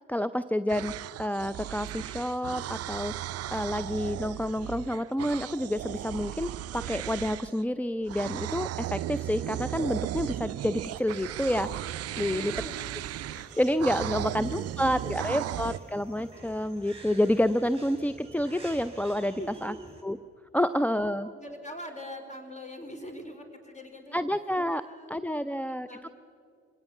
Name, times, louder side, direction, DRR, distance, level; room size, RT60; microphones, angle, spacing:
voice 1, 0.1-12.5 13.3-19.7 20.0-20.2 20.5-21.3 24.1-24.8 25.1-26.1, left 1 dB, 5° left, 11 dB, 0.5 m, -29 dB
sound 1, 0.7-7.6 8.1-15.8, right 13 dB, 50° right, 0.5 m, -36 dB
sound 2, 10.9-20.0, right 2 dB, 15° right, 7.1 m, -50 dB
voice 2, 12.1-12.8 13.9-15.3 19.2-19.8 20.5-24.2 24.7-26.1, equal, 20° left, 7 dB, 4.0 m, -44 dB
24.5 x 17.5 x 7.2 m, 2.3 s
hypercardioid pair, 50°, 33 cm